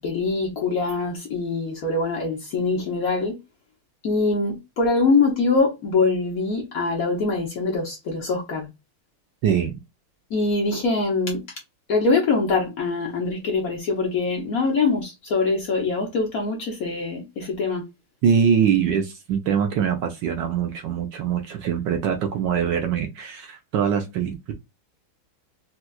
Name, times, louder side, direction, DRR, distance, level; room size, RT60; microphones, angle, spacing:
voice 1, 0.0-3.4 4.0-8.7 10.3-11.4 11.9-17.9, left 3 dB, 55° left, 1.0 m, -23 dB
voice 2, 9.4-9.8 18.2-24.5, right 7 dB, 70° right, 1.1 m, -23 dB
4.3 x 2.3 x 2.3 m
omnidirectional pair, 2.3 m